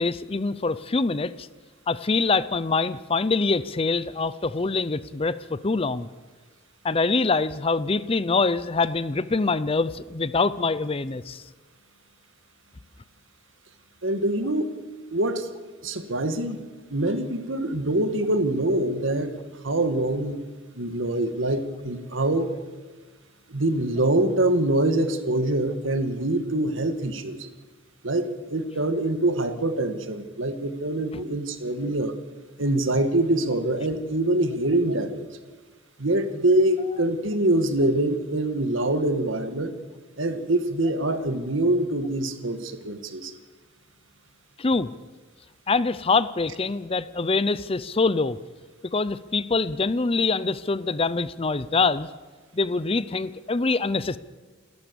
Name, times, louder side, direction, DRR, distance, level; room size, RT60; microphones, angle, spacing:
voice 1, 0.0-1.5 1.9-6.1 6.8-11.4 44.6-44.9 45.7-48.4 48.8-52.1 52.5-54.2, left 3 dB, 30° left, 16 dB, 0.6 m, -24 dB
voice 2, 14.0-14.7 15.1-15.5 15.8-16.6 16.9-19.4 19.6-20.4 20.8-22.5 23.5-27.5 28.0-32.1 32.6-35.3 36.0-39.8 40.2-43.3, right 1 dB, 70° right, 9 dB, 1.7 m, -24 dB
28.5 x 13.5 x 7.0 m, 1.3 s
head